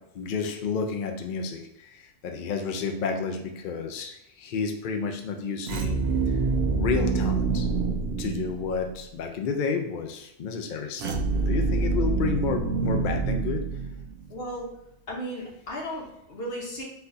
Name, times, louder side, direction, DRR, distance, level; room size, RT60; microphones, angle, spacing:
voice 1, 0.1-6.0 6.8-7.7 8.2-13.6, left 5 dB, 75° left, 4 dB, 0.4 m, -31 dB
sound 1, 5.6-9.0 11.0-14.3, right 4 dB, 60° right, 0.8 m, -26 dB
voice 2, 14.3-14.7 15.1-16.8, equal, 50° left, -3 dB, 1.3 m, -35 dB
4.0 x 2.7 x 3.9 m, 0.83 s
omnidirectional pair, 1.4 m